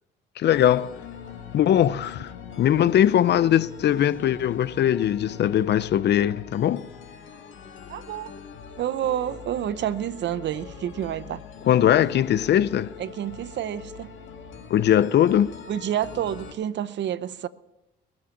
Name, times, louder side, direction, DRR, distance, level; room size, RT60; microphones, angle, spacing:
voice 1, 0.4-1.0 1.5-2.3 2.6-6.9 11.7-12.9 14.7-15.5, left 10 dB, 60° left, 0.5 m, -20 dB
sound 1, 0.5-16.5, left 6 dB, 75° left, 2.2 m, -42 dB
voice 2, 7.9-8.3 8.8-11.4 13.0-14.1 15.7-17.5, right 10 dB, 65° right, 0.8 m, -29 dB
21.5 x 7.4 x 7.2 m
cardioid pair, 90°, 20 cm